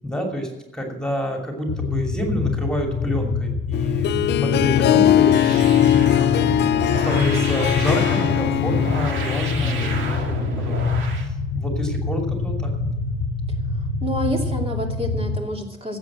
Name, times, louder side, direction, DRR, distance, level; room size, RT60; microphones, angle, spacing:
voice 1, 0.0-6.5 7.0-10.9 11.2-13.3, equal, 5° left, 1 dB, 2.7 m, -29 dB
sound 1, 1.7-15.4, left 4 dB, 80° left, 0.9 m, -25 dB
Harp, 3.7-10.2, left 12 dB, 60° left, 0.4 m, -21 dB
sound 2, 5.2-11.3, right 4 dB, 80° right, 2.0 m, -32 dB
voice 2, 9.6-10.0 14.0-16.0, equal, 30° right, 1 dB, 2.8 m, -28 dB
12.5 x 8.2 x 7.6 m, 0.99 s
cardioid pair, 90°, 20 cm